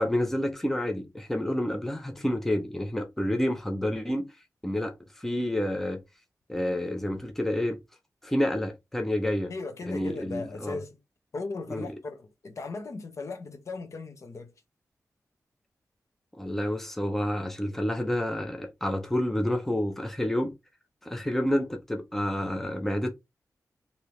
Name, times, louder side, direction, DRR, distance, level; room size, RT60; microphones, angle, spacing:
voice 1, 0.0-4.3 4.6-6.0 6.5-7.8 8.2-9.5 9.9-10.8 11.7-11.9 16.3-20.5 21.0-23.1, left 1 dB, 5° left, 0.6 m, -29 dB
voice 2, 9.5-11.0 11.3-14.5, left 3 dB, 55° left, 0.8 m, -37 dB
3.2 x 2.8 x 3.0 m
wide cardioid pair, 140°, 6 cm